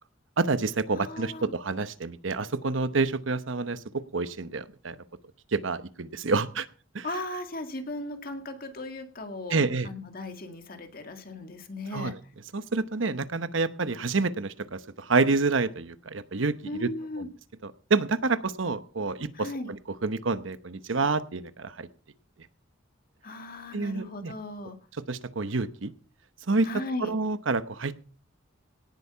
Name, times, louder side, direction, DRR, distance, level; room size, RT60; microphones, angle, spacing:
voice 1, 0.4-5.0 5.5-6.7 6.9-7.1 9.5-9.9 11.9-12.1 12.5-16.9 17.2-17.3 17.6-19.5 20.0-21.9 23.7-24.3 25.1-25.9 26.5-26.7 27.0-28.0, right 3 dB, 75° right, 13 dB, 0.9 m, -28 dB
voice 2, 0.9-1.5 7.0-12.1 16.6-17.3 19.3-19.7 23.2-24.8 26.6-27.1, left 2 dB, 50° left, 6 dB, 2.0 m, -37 dB
18.0 x 8.2 x 5.7 m, 0.40 s
head